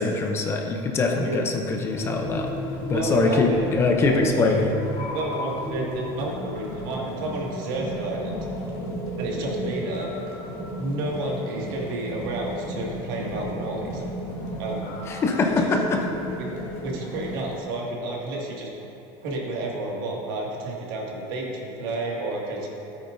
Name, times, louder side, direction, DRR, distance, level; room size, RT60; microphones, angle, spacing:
voice 1, 0.0-2.5 2.9-4.7 15.1-16.0, left 3 dB, 20° left, 2 dB, 0.6 m, -23 dB
sound 1, 1.9-17.6, equal, 50° left, 2.2 m, -33 dB
voice 2, 2.9-3.7 4.0-4.6 5.1-8.5 9.2-10.1 10.8-14.0 14.6-14.9 15.6-15.7 16.4-16.5 16.8-18.7 19.2-22.7, right 2 dB, 75° right, -2 dB, 2.1 m, -30 dB
16.0 x 8.8 x 2.7 m, 2.9 s
cardioid pair, 175°, 12 cm